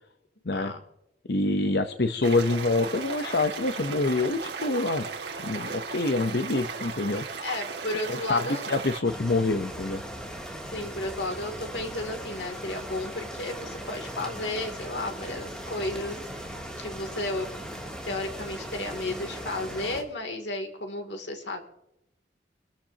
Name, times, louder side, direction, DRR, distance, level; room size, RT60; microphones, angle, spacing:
voice 1, 1.3-5.1 5.4-7.5 8.1-10.0, left 2 dB, 65° left, 8 dB, 0.8 m, -26 dB
sound 1, 2.2-9.0, right 4 dB, 75° right, 2.2 m, -36 dB
voice 2, 7.4-8.6 10.7-17.5 18.0-21.6, left 2 dB, 85° left, 4 dB, 2.8 m, -33 dB
sound 2, 9.0-20.0, right 1 dB, 5° left, 2.8 m, -38 dB
25.5 x 13.5 x 2.9 m, 0.83 s
head